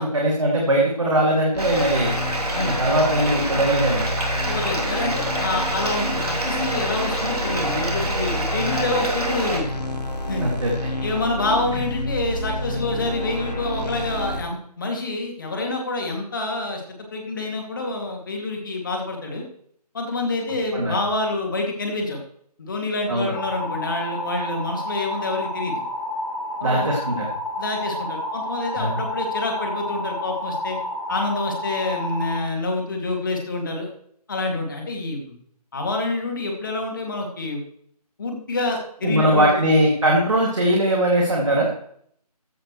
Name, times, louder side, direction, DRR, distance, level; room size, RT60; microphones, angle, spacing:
voice 1, 0.0-2.1 2.6-4.1 10.4-10.7 20.7-21.0 23.1-23.3 26.6-27.3 28.8-29.0 39.0-41.7, right 1 dB, 50° right, -2 dB, 2.5 m, -20 dB
sound 1, 1.5-14.4, left 1 dB, 80° left, 2.1 m, -29 dB
Bathtub (filling or washing), 1.6-9.6, right 1 dB, 65° right, 3.1 m, -27 dB
voice 2, 4.5-9.7 10.3-10.5 11.0-16.8 17.1-19.4 19.9-22.2 22.6-25.8 26.6-26.9 27.6-30.8 31.1-33.9 34.3-35.4 35.7-37.6 38.2-39.6, left 2 dB, 30° left, 2 dB, 2.5 m, -27 dB
sound 2, 23.3-32.3, left 1 dB, 10° left, 1.6 m, -30 dB
15.0 x 11.0 x 3.2 m, 0.65 s
figure-of-eight pair, 160°, 21 cm